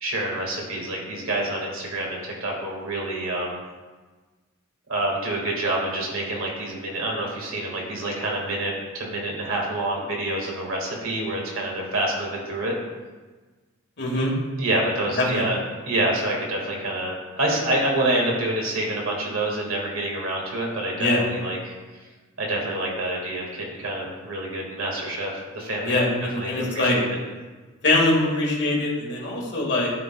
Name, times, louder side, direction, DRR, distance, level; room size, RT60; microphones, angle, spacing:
voice 1, 0.0-3.6 4.9-12.7 14.6-15.6 15.9-21.7 22.4-26.0 26.4-27.1, right 1 dB, 80° right, -2 dB, 1.7 m, -27 dB
voice 2, 14.0-14.3 15.2-15.5 20.9-21.3 25.8-27.0 27.8-29.9, left 2 dB, 55° left, -2 dB, 1.6 m, -23 dB
12.0 x 4.0 x 2.2 m, 1.3 s
head